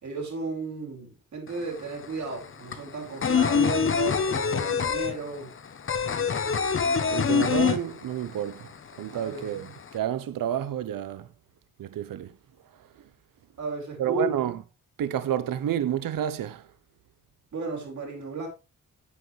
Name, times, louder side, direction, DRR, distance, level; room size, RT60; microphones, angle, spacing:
voice 1, 0.0-5.5 9.1-9.5 13.6-14.3 17.5-18.5, right 3 dB, 60° right, 4.6 m, -34 dB
sound 1, 1.5-1.6 1.8-8.4 8.7-8.8 9.1-9.9, left 6 dB, 40° left, 0.9 m, -25 dB
voice 2, 7.1-8.7 9.0-11.3 11.8-12.3 14.0-14.6 15.0-16.7, right 10 dB, 80° right, 0.8 m, -29 dB
9.8 x 9.6 x 3.2 m
wide cardioid pair, 165°, 33 cm